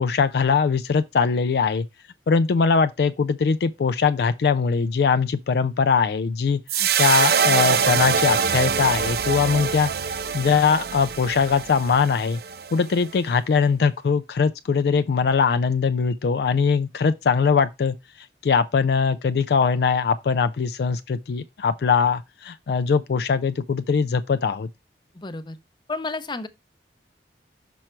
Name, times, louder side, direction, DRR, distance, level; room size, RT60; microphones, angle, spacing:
voice 1, 0.0-1.8 2.3-9.9 10.3-12.4 12.7-18.0 18.4-24.7, left 5 dB, 60° left, 0.3 m, -21 dB
sound 1, 6.7-13.1, right 7 dB, 60° right, 0.5 m, -24 dB
voice 2, 25.1-25.6 25.9-26.5, left 3 dB, 25° left, 0.7 m, -31 dB
6.2 x 4.5 x 4.4 m
head